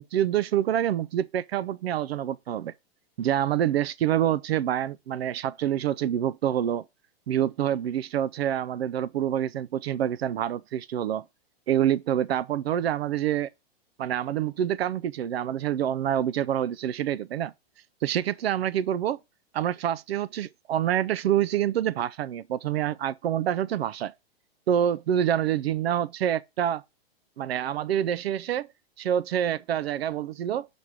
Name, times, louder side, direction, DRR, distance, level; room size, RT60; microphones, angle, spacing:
voice 1, 0.0-2.7 3.2-6.8 7.3-11.2 11.7-13.5 14.0-17.5 18.0-19.2 19.5-24.1 24.7-26.8 27.4-28.7 29.0-30.7, right 10 dB, 75° right, 0.5 m, -26 dB
5.8 x 5.2 x 4.9 m
hypercardioid pair, 110°, 31 cm